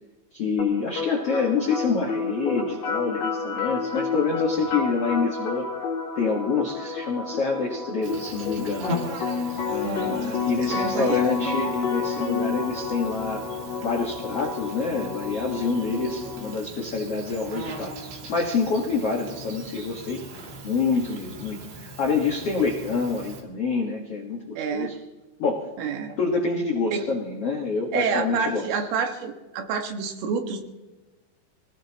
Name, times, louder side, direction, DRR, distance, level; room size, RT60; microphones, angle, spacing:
voice 1, 0.3-5.7 6.1-8.9 9.7-13.4 13.8-17.9 18.3-20.3 20.6-25.0 25.4-25.7 26.2-28.8, left 4 dB, 90° left, -1 dB, 1.3 m, -27 dB
sound 1, 0.6-16.6, left 4 dB, 50° left, 3.5 m, -30 dB
Insect, 8.0-23.4, right 1 dB, 60° right, 4.5 m, -39 dB
voice 2, 9.8-10.3 10.6-11.2 24.6-24.9 25.8-26.1 26.9-27.0 27.9-30.6, right 5 dB, 85° right, 4 dB, 4.2 m, -28 dB
25.5 x 18.0 x 3.0 m, 1.2 s
omnidirectional pair, 5.6 m